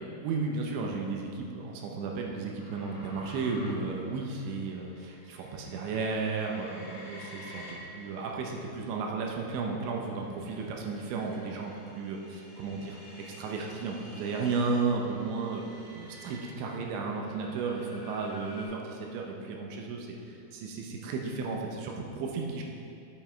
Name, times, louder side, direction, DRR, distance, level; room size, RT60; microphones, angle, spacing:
voice 1, 0.0-15.6 15.9-22.6, right 4 dB, 75° right, 0 dB, 2.8 m, -34 dB
sound 1, 2.6-8.8 9.4-18.6, left 1 dB, 30° left, 1.1 m, -51 dB
9.5 x 7.9 x 4.4 m, 2.6 s
omnidirectional pair, 5.9 m